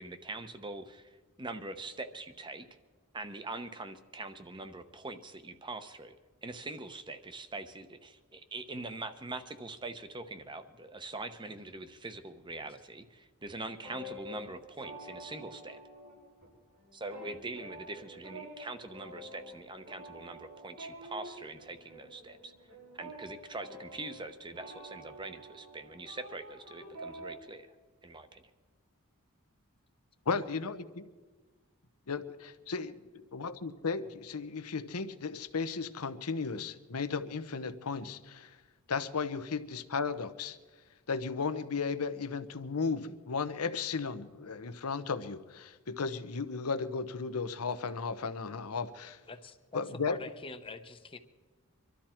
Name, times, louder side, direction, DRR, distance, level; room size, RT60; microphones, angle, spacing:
voice 1, 0.0-2.7 3.1-6.2 6.4-15.8 16.9-22.5 22.9-27.7 28.0-28.4, right 2 dB, 20° right, 9 dB, 0.9 m, -43 dB
sound 1, 13.7-16.5 16.8-27.4, equal, 85° right, 6.6 m, -48 dB
voice 2, 30.3-30.8 32.1-32.9 33.3-38.6 38.9-40.6 41.1-49.2 49.7-50.2, left 5 dB, 80° left, 11 dB, 0.9 m, -35 dB
voice 3, 49.3-51.2, left 3 dB, 25° left, 8 dB, 0.8 m, -45 dB
24.5 x 13.0 x 4.4 m, 1.3 s
head